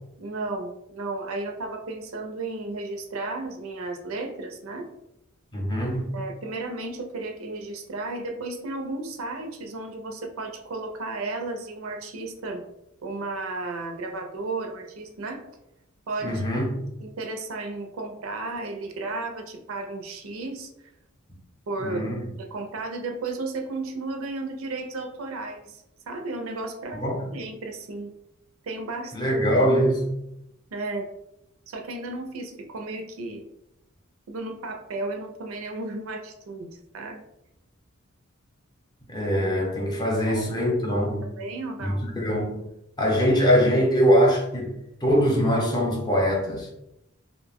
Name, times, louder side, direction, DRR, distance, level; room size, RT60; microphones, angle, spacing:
voice 1, 0.2-4.9 6.1-12.6 13.0-15.4 16.1-16.4 17.0-20.7 21.7-27.0 27.3-28.1 28.6-29.5 30.7-31.1 31.7-33.5 34.3-37.2 39.9-40.0 40.3-40.4 41.2-42.0, right 2 dB, 75° right, 0.4 m, -34 dB
voice 2, 5.5-6.2 16.2-16.7 21.8-22.2 26.9-27.3 29.1-30.2 39.1-41.3 41.8-42.6 43.0-46.7, equal, 20° left, 0.6 m, -23 dB
2.6 x 2.1 x 3.4 m
head